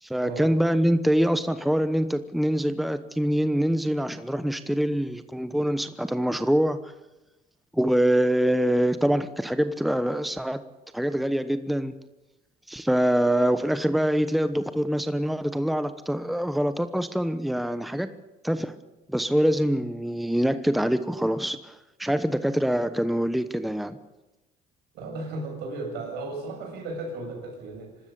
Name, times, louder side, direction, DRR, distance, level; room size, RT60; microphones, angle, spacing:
voice 1, 0.0-6.9 7.7-10.6 10.9-11.9 12.7-18.2 18.4-18.7 19.1-24.0, equal, ahead, 11 dB, 1.0 m, -24 dB
voice 2, 24.9-28.0, right 2 dB, 85° right, 2 dB, 7.1 m, -35 dB
25.0 x 13.0 x 8.7 m, 1.0 s
cardioid pair, 110°, 17 cm